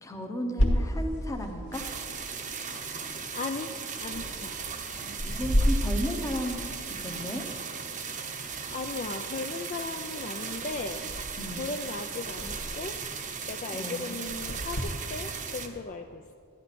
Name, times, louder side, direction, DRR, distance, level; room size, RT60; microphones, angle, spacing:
voice 1, 0.0-1.8 4.9-6.6 6.9-7.4 11.4-11.7 13.7-14.1, equal, 15° left, 4 dB, 0.8 m, -34 dB
sound 1, 0.6-14.8, equal, 75° left, 1.4 m, -34 dB
sound 2, 1.7-15.7, right 6 dB, 35° right, 0.7 m, -37 dB
voice 2, 3.3-4.6 8.0-8.3 8.7-11.0 11.5-13.0 13.5-16.3, left 3 dB, 35° left, 4 dB, 0.4 m, -37 dB
13.0 x 10.0 x 4.2 m, 2.4 s
head